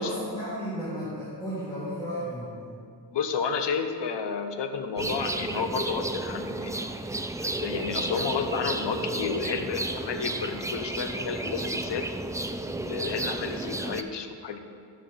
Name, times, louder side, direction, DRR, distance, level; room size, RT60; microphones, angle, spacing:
voice 1, 0.0-2.7, equal, 10° left, -12 dB, 3.1 m, -34 dB
voice 2, 3.1-6.8 7.4-12.1 12.8-14.6, left 5 dB, 75° left, 7 dB, 0.9 m, -31 dB
sound 1, 5.0-14.0, right 2 dB, 10° right, 0.3 m, -32 dB
14.0 x 5.8 x 5.7 m, 2.3 s
wide cardioid pair, 130°, 42 cm